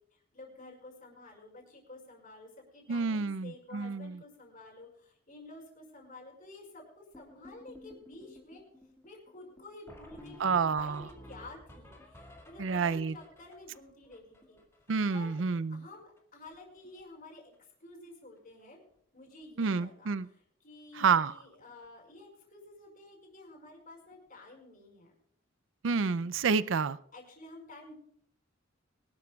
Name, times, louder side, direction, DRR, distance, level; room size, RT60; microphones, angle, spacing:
voice 1, 0.1-8.6 9.0-14.6 15.1-17.5 17.8-18.8 19.1-25.1 27.1-27.9, left 2 dB, 45° left, 1 dB, 5.5 m, -51 dB
voice 2, 2.9-4.2 10.4-11.1 12.6-13.1 14.9-15.8 19.6-20.3 21.0-21.3 25.8-27.0, right 5 dB, 75° right, 16 dB, 0.5 m, -29 dB
sound 1, 7.1-15.4 15.6-15.7 15.9-16.2 16.5-17.0 17.3-17.6 18.4-18.5 18.9-19.0 19.3-19.4 21.7-21.8 24.1-24.2, left 1 dB, 15° left, 2.1 m, -54 dB
24.5 x 12.5 x 2.4 m, 0.68 s
head